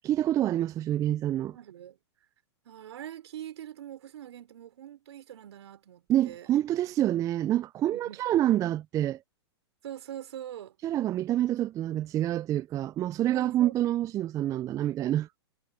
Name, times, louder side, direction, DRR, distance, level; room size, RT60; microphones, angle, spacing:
voice 1, 0.0-1.6 6.1-9.2 10.8-15.3, right 12 dB, 20° right, 0.3 m, -27 dB
voice 2, 1.4-2.0 2.6-6.5 7.9-8.2 9.8-10.8 13.3-13.8, right 11 dB, 70° right, 4.9 m, -43 dB
hypercardioid pair, 110°, 15 cm